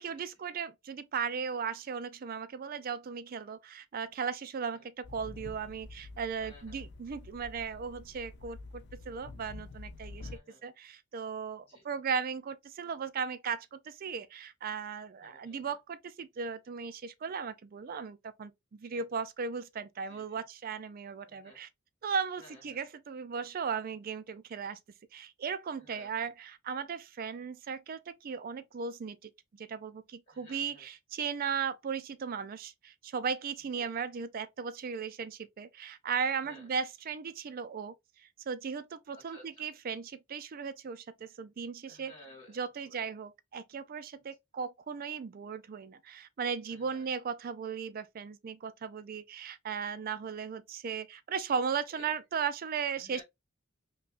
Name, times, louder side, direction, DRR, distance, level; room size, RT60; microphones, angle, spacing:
voice 1, 0.0-10.3 10.6-21.7 22.0-24.8 25.1-42.1 42.5-53.2, right 6 dB, 45° right, 0.4 m, -37 dB
sound 1, 5.0-10.4, left 3 dB, 55° left, 0.4 m, -47 dB
voice 2, 6.4-6.8 10.2-10.6 11.7-11.8 15.2-15.8 18.9-19.0 20.1-20.4 21.2-21.6 22.4-22.8 25.7-26.1 30.3-30.9 33.7-33.9 36.4-36.7 39.1-39.7 41.9-43.0 46.7-47.1 51.9-52.1 52.9-53.2, left 1 dB, 30° left, 1.9 m, -55 dB
5.3 x 2.2 x 2.4 m
head